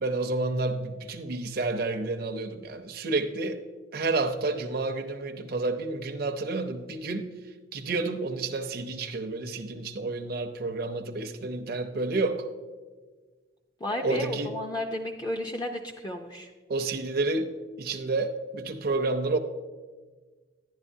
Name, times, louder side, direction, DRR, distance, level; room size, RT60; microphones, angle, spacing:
voice 1, 0.0-3.6 3.9-7.3 7.7-12.5 14.0-14.6 16.7-17.5 17.8-19.4, right 3 dB, 55° right, 6 dB, 0.6 m, -30 dB
voice 2, 13.8-16.5, left 1 dB, 20° left, 1 dB, 0.5 m, -33 dB
11.0 x 10.5 x 2.7 m, 1.4 s
head